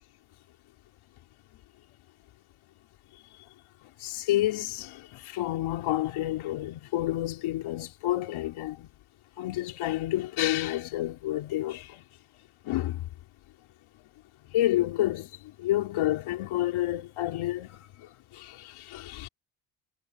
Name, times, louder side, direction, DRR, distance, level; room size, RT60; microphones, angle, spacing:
voice 1, 4.0-8.9 9.4-12.0 12.7-13.0 14.5-15.3 15.6-17.8 18.3-19.3, left 14 dB, 85° left, 3.7 m, -29 dB
cardioid pair, 115°, 48 cm